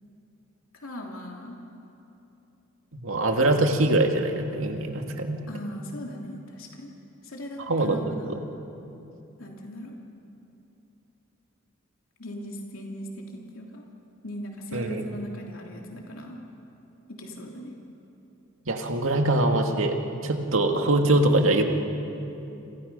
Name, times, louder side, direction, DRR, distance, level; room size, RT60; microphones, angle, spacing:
voice 1, 0.7-1.6 5.5-6.9 7.2-8.4 9.4-9.9 12.2-13.8 14.2-16.4 17.1-17.7, equal, 80° left, 0 dB, 2.9 m, -39 dB
voice 2, 2.9-5.4 7.7-8.0 8.3-8.4 14.7-15.0 18.7-20.0 20.2-21.6, right 2 dB, 75° right, 3 dB, 2.1 m, -23 dB
29.5 x 27.0 x 5.5 m, 2.9 s
head